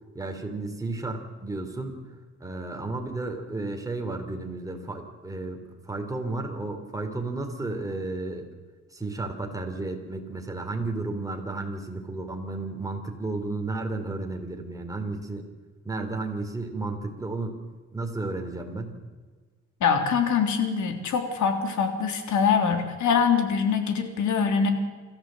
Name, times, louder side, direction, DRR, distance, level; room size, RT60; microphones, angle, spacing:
voice 1, 0.1-2.0 2.4-8.5 8.9-15.5 15.8-17.6 17.9-19.0, right 2 dB, 10° right, 3 dB, 3.8 m, -33 dB
voice 2, 19.8-24.7, left 6 dB, 70° left, 5 dB, 3.3 m, -24 dB
26.5 x 14.0 x 7.9 m, 1.4 s
cardioid pair, 90°, 30 cm